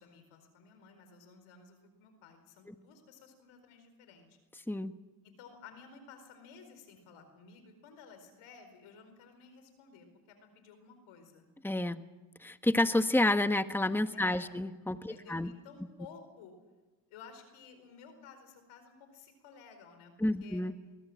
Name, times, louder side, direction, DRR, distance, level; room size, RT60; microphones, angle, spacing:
voice 1, 0.0-4.4 5.2-11.5 14.1-14.6 15.1-16.5 17.1-20.6, left 5 dB, 85° left, 8 dB, 4.7 m, -55 dB
voice 2, 11.6-12.0 12.4-15.5 20.2-20.7, left 1 dB, 5° left, 10 dB, 1.3 m, -29 dB
23.0 x 19.5 x 7.9 m, 1.2 s
supercardioid pair, 55°, 48 cm